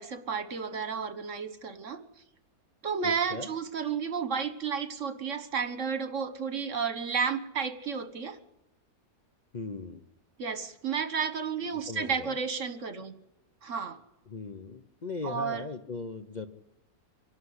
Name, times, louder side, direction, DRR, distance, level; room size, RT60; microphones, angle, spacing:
voice 1, 0.0-2.0 2.8-8.4 10.4-13.1 13.6-14.0 15.2-15.6, right 6 dB, 55° right, 10 dB, 1.7 m, -32 dB
voice 2, 3.0-3.5 9.5-10.0 11.7-12.4 14.3-16.5, left 4 dB, 40° left, 7 dB, 0.8 m, -39 dB
25.0 x 12.0 x 9.6 m, 0.89 s
omnidirectional pair, 1.5 m